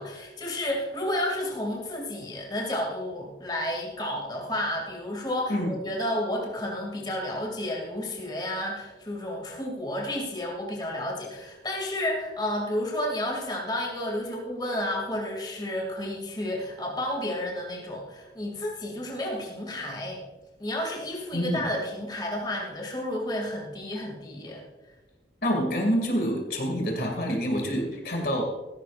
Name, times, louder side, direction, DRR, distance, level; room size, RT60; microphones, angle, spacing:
voice 1, 0.0-20.2 20.6-24.6, left 1 dB, 25° left, -1 dB, 2.6 m, -31 dB
voice 2, 21.3-21.7 25.4-28.4, equal, 60° left, 1 dB, 2.5 m, -27 dB
16.5 x 15.0 x 2.6 m, 1.2 s
head